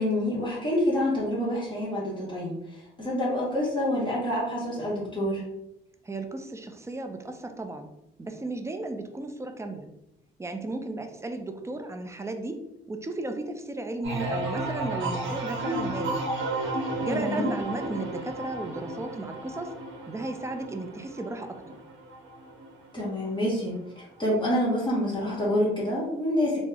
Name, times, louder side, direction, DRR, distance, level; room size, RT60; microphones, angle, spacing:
voice 1, 0.0-5.4 17.1-17.5 22.9-23.7 24.2-26.6, left 1 dB, 25° left, -6 dB, 1.2 m, -27 dB
voice 2, 6.0-7.9 8.2-9.9 10.4-16.2 17.0-19.8 20.1-21.8, right 2 dB, 15° right, 6 dB, 0.4 m, -35 dB
sound 1, 14.0-23.6 24.0-24.5, right 2 dB, 80° right, 1.0 m, -33 dB
3.1 x 2.0 x 3.5 m, 0.84 s
cardioid pair, 90°, 20 cm